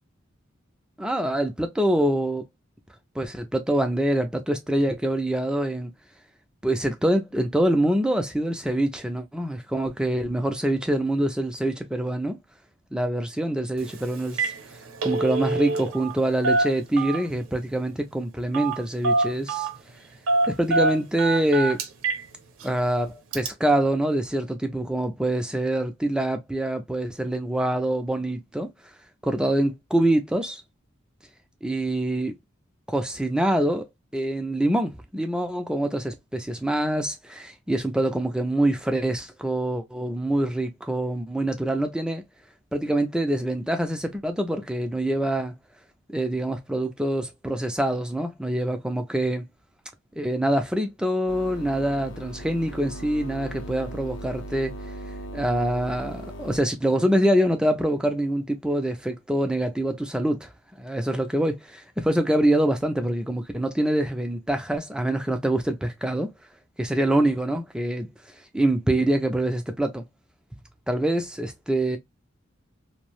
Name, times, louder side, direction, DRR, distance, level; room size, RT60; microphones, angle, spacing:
voice 1, 1.0-2.4 3.2-5.9 6.6-12.4 12.9-14.5 15.0-19.7 20.5-21.8 22.6-28.7 29.2-30.6 31.6-32.3 32.9-33.9 34.1-42.2 42.7-45.5 46.1-49.4 50.2-54.8 55.3-60.5 60.8-66.3 66.8-68.1 68.5-70.0 70.9-72.0, right 1 dB, 5° right, 0.3 m, -25 dB
Telephone, 13.8-13.9 14.2-14.6 14.9-16.1 16.4-17.4 18.5-18.8 19.0-19.7 20.3-22.2 22.6-22.7 23.3-23.5, right 2 dB, 90° right, 0.6 m, -25 dB
sound 1, 51.3-56.6, right 1 dB, 65° left, 0.6 m, -38 dB
2.6 x 2.0 x 2.9 m
head